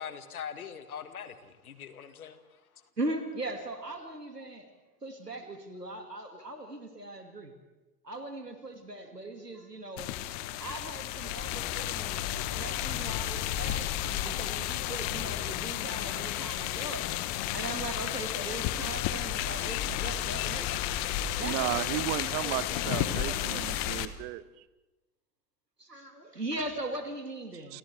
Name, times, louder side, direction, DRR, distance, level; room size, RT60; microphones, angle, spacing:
voice 1, 0.0-2.4, left 8 dB, 65° left, 10 dB, 1.9 m, -42 dB
voice 2, 3.0-4.7 5.0-7.5 8.0-10.2 10.6-20.8 21.4-23.7 25.8-27.8, right 2 dB, 90° right, 6 dB, 2.2 m, -39 dB
sound 1, 10.0-24.1, left 13 dB, 35° left, 1.2 m, -32 dB
voice 3, 21.4-24.6 27.5-27.8, right 17 dB, 30° right, 18 dB, 0.8 m, -34 dB
28.5 x 28.5 x 3.4 m, 1.1 s
figure-of-eight pair, 90°, 47 cm